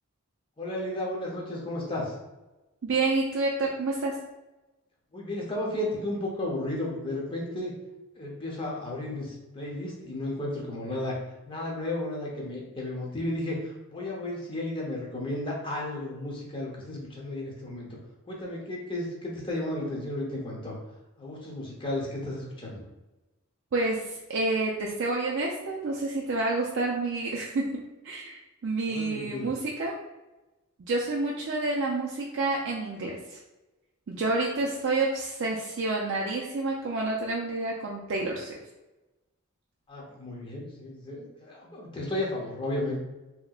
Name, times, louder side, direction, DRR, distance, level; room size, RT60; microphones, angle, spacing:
voice 1, 0.6-2.2 5.1-7.7 8.2-11.2 11.5-18.0 18.3-20.8 21.2-22.8 28.9-29.5 39.9-43.0, left 1 dB, 25° left, -3 dB, 0.7 m, -33 dB
voice 2, 2.8-4.2 23.7-27.6 28.0-29.9 30.9-33.4 34.1-38.5, right 2 dB, 55° right, -2 dB, 0.4 m, -29 dB
3.4 x 2.8 x 2.3 m, 1.1 s
head